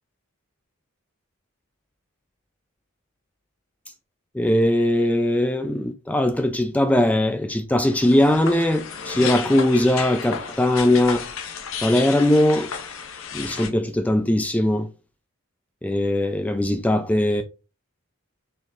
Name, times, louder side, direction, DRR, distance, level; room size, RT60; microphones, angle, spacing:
voice 1, 4.3-11.3 11.8-12.7 13.3-14.9 15.8-17.4, left 1 dB, 5° left, 0.3 m, -20 dB
sound 1, 7.8-13.7, left 6 dB, 70° left, 0.8 m, -33 dB
4.5 x 3.7 x 2.7 m
head